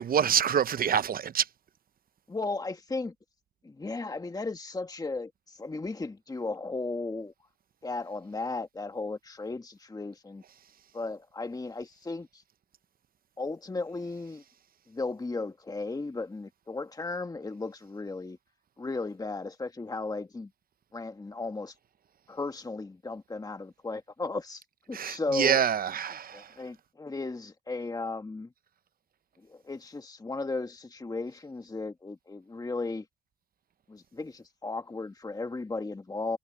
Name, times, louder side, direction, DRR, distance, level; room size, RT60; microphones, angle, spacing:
voice 1, 0.0-1.5 24.9-26.6, right 8 dB, 45° right, 0.8 m, -26 dB
voice 2, 2.3-3.1 3.6-7.3 7.8-10.4 10.9-12.4 13.4-14.4 14.9-18.4 18.8-20.5 20.9-21.7 22.3-25.6 26.3-28.5 29.4-33.0 33.9-36.4, left 3 dB, 20° left, 1.5 m, -35 dB
cardioid pair, 90°, 20 cm